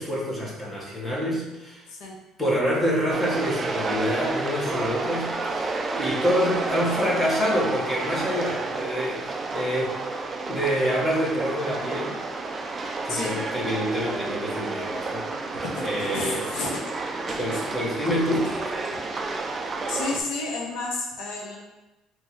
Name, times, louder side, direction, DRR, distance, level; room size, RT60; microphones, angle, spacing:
voice 1, 0.0-1.9 2.4-10.0 10.5-12.2 13.0-15.3 15.8-16.5 17.4-18.5, equal, 5° left, -5 dB, 0.9 m, -27 dB
sound 1, 3.1-20.2, right 3 dB, 20° right, 0.3 m, -30 dB
voice 2, 6.4-7.1 13.1-13.4 15.5-16.8 17.3-17.7 19.9-21.6, left 3 dB, 60° left, -1 dB, 0.8 m, -32 dB
3.5 x 2.9 x 4.4 m, 1.0 s
cardioid pair, 175°, 0 cm